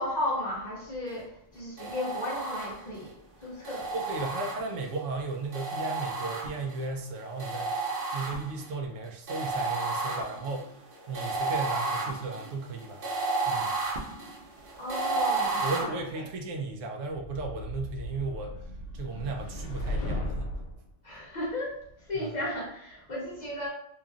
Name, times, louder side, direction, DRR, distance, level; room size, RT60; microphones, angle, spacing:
voice 1, 0.0-3.9 14.8-16.3 21.0-23.7, left 1 dB, 50° left, -3 dB, 0.6 m, -35 dB
sound 1, 1.8-3.0 3.6-5.0 5.5-6.9 7.4-8.7 9.3-15.8, right 3 dB, 55° right, 0.8 m, -32 dB
voice 2, 3.9-10.8 11.1-13.0 13.5-13.8 15.6-18.6 18.9-20.5 22.1-22.3, right 3 dB, 85° right, 3 dB, 0.9 m, -35 dB
sound 2, 17.1-20.8, left 1 dB, 75° left, 0.9 m, -36 dB
3.0 x 2.5 x 2.4 m, 0.70 s
omnidirectional pair, 1.3 m